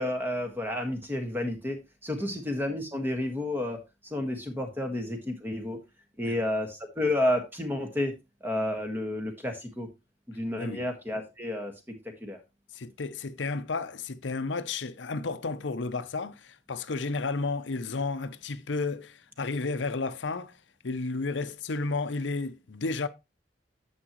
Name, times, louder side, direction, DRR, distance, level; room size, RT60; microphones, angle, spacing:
voice 1, 0.0-3.8 4.0-5.8 6.2-8.1 8.4-9.9 10.3-12.4, left 1 dB, 10° right, 1.6 m, -31 dB
voice 2, 12.7-20.5 20.8-23.1, left 3 dB, 90° left, 0.7 m, -32 dB
10.0 x 7.4 x 3.1 m
head